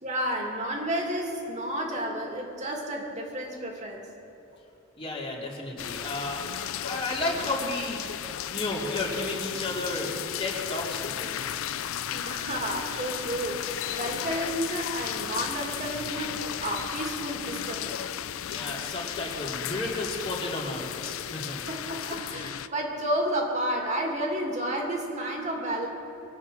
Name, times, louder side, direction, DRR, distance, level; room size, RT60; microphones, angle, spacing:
voice 1, 0.0-4.1 12.1-18.0 21.6-25.9, right 1 dB, 35° right, 0 dB, 2.3 m, -31 dB
voice 2, 5.0-8.0 8.5-11.4 18.5-21.7, left 2 dB, 25° left, -3 dB, 2.6 m, -33 dB
sound 1, 5.8-22.7, left 10 dB, 85° left, 0.5 m, -34 dB
24.0 x 8.3 x 6.2 m, 2.8 s
head